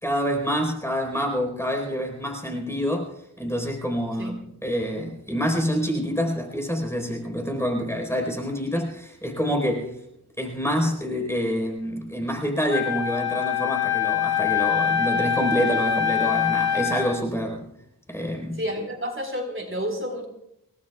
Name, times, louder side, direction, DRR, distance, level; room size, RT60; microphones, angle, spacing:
voice 1, 0.0-3.1 3.4-9.9 10.4-17.6 18.1-18.6, equal, 5° left, 2 dB, 4.5 m, -27 dB
Wind instrument woodwind instrument, 12.7-17.2, left 8 dB, 45° left, 7.7 m, -24 dB
voice 2, 18.6-20.3, equal, 35° right, 1 dB, 4.7 m, -30 dB
28.5 x 19.0 x 2.4 m, 0.79 s
wide cardioid pair, 75°, 38 cm